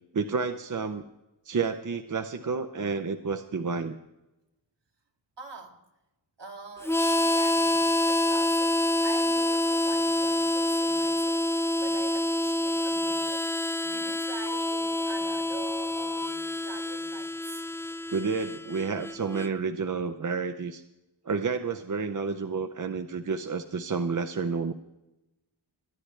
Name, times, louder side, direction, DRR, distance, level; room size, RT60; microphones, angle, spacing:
voice 1, 0.1-1.0 1.4-4.0 18.1-20.8 21.3-24.7, right 5 dB, 40° right, 7 dB, 0.7 m, -30 dB
voice 2, 5.4-5.8 6.4-17.6, right 5 dB, 65° right, 3 dB, 1.9 m, -45 dB
Harmonica, 6.8-19.5, left 1 dB, 5° left, 0.3 m, -27 dB
23.0 x 10.0 x 3.3 m, 0.95 s
wide cardioid pair, 105°, 46 cm